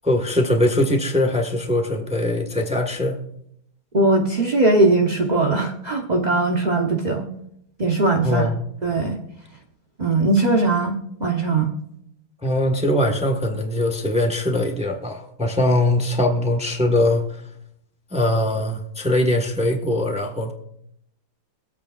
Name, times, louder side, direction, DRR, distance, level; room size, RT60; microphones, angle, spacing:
voice 1, 0.0-3.2 8.2-8.6 12.4-17.4 18.1-20.5, left 1 dB, 5° right, 4 dB, 0.8 m, -21 dB
voice 2, 3.9-7.3 7.8-8.5 8.8-9.2 10.0-10.9 11.2-11.7, right 2 dB, 60° right, 1 dB, 0.4 m, -19 dB
24.0 x 8.5 x 2.4 m, 0.74 s
omnidirectional pair, 2.4 m